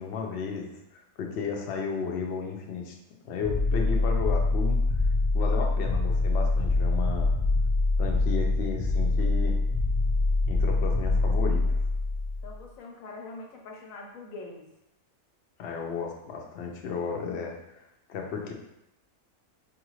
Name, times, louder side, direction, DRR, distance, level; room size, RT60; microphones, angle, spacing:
voice 1, 0.0-3.0 3.2-4.8 5.3-7.3 8.0-9.6 10.5-11.6 15.6-17.6 18.1-18.5, left 5 dB, 60° left, 1 dB, 0.8 m, -33 dB
sound 1, 3.4-12.5, left 3 dB, 10° left, 0.8 m, -25 dB
voice 2, 12.4-14.7, left 3 dB, 75° left, 1 dB, 1.1 m, -43 dB
4.7 x 2.5 x 3.1 m, 0.88 s
omnidirectional pair, 1.5 m